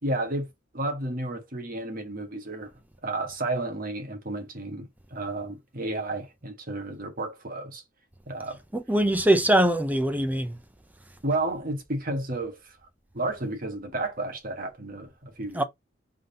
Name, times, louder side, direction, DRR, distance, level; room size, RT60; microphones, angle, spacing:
voice 1, 0.0-0.5 0.7-2.7 3.0-7.8 8.3-8.6 11.2-12.6 13.1-15.6, right 2 dB, 45° right, 1.3 m, -32 dB
voice 2, 8.7-10.6 15.5-15.6, right 1 dB, 10° right, 0.6 m, -22 dB
3.7 x 3.6 x 3.9 m
head